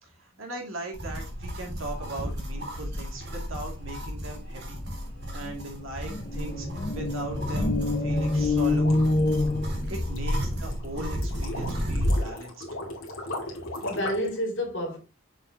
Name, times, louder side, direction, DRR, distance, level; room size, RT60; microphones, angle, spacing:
voice 1, 0.0-4.8 5.3-6.7 6.9-9.0 9.9-12.6, right 1 dB, 85° right, 2.5 m, -38 dB
sound 1, 0.9-12.3, equal, 55° right, 2.0 m, -32 dB
sound 2, 4.9-5.0 5.2-10.3, left 2 dB, 35° left, 0.7 m, -27 dB
sound 3, 8.3-14.4, left 1 dB, 80° left, 2.3 m, -37 dB
voice 2, 13.5-15.0, equal, 60° left, 2.7 m, -30 dB
7.0 x 5.8 x 2.9 m
head